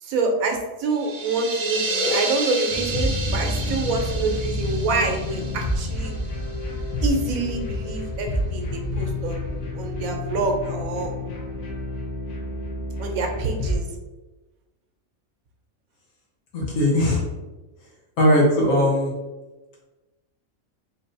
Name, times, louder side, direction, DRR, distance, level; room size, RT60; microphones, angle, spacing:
voice 1, 0.0-6.1 7.0-9.4 9.7-11.1 13.0-13.8, right 3 dB, 85° right, 3 dB, 1.1 m, -26 dB
sound 1, 0.9-6.5, right 2 dB, 50° right, 1.0 m, -30 dB
sound 2, 2.7-13.8, left 1 dB, 85° left, 1.2 m, -29 dB
voice 2, 16.5-17.3 18.2-19.1, left 1 dB, 70° left, -3 dB, 1.4 m, -19 dB
3.9 x 2.6 x 2.6 m, 1.1 s
omnidirectional pair, 1.4 m